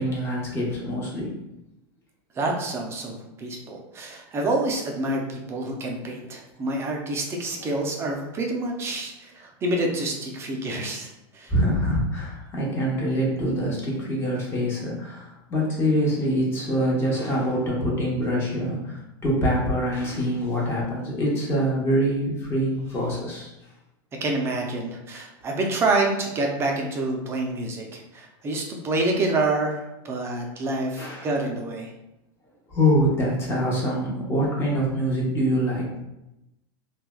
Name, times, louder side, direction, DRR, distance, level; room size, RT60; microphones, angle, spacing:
voice 1, 0.0-1.3 7.6-7.7 11.5-23.5 31.0-31.3 32.7-36.0, equal, 20° left, -4 dB, 0.8 m, -25 dB
voice 2, 2.4-11.5 24.2-31.9, right 2 dB, 20° right, 1 dB, 0.4 m, -27 dB
3.1 x 2.2 x 2.2 m, 0.91 s
supercardioid pair, 145°, 14 cm